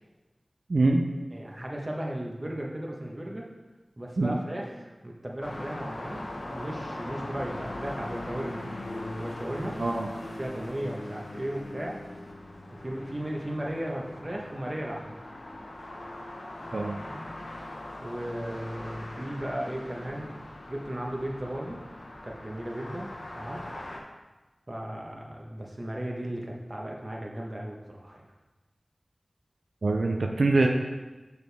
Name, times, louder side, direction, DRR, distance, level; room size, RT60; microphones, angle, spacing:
voice 1, 0.7-1.0 4.2-4.4 9.8-10.1 16.7-17.0 29.8-30.7, right 2 dB, 85° right, 2 dB, 0.4 m, -24 dB
voice 2, 1.3-3.5 4.0-8.8 9.2-9.8 10.4-12.0 12.7-15.2 17.0-17.2 18.0-20.3 20.7-21.8 22.2-23.7 24.7-28.3, right 1 dB, 35° right, -1 dB, 1.1 m, -36 dB
sound 1, 5.4-24.0, left 1 dB, 85° left, 0.7 m, -40 dB
6.3 x 4.6 x 3.4 m, 1.2 s
wide cardioid pair, 40°, 0 cm